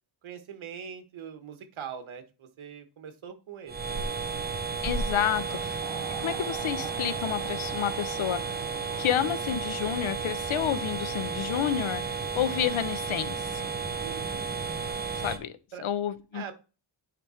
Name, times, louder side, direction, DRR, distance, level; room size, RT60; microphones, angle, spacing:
voice 1, 0.2-4.3 5.3-5.7 14.0-14.6 15.7-15.9 16.3-16.5, right 7 dB, 80° right, 8 dB, 1.4 m, -43 dB
sound 1, 3.7-15.4, right 5 dB, 20° right, 0.7 m, -33 dB
voice 2, 4.8-5.8 6.2-8.5 9.0-13.6 15.2-15.6 15.8-16.5, left 10 dB, 85° left, 13 dB, 0.8 m, -30 dB
sound 2, 5.8-11.7, right 8 dB, 60° right, 0.8 m, -46 dB
10.5 x 3.5 x 4.3 m, 0.32 s
wide cardioid pair, 170°, 47 cm